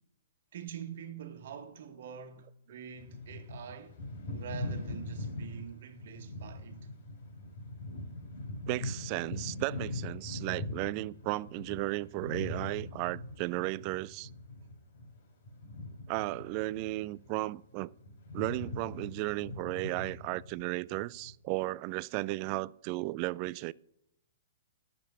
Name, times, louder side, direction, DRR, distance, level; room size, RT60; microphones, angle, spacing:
voice 1, 0.5-4.0 4.3-6.8, right 8 dB, 65° right, 1.5 m, -45 dB
sound 1, 3.0-17.3 17.6-21.3, left 1 dB, 55° left, 4.4 m, -42 dB
voice 2, 8.7-14.3 16.1-17.9 18.3-23.7, right 20 dB, 40° right, 0.3 m, -35 dB
11.5 x 6.9 x 6.8 m
hypercardioid pair, 145°, 0 cm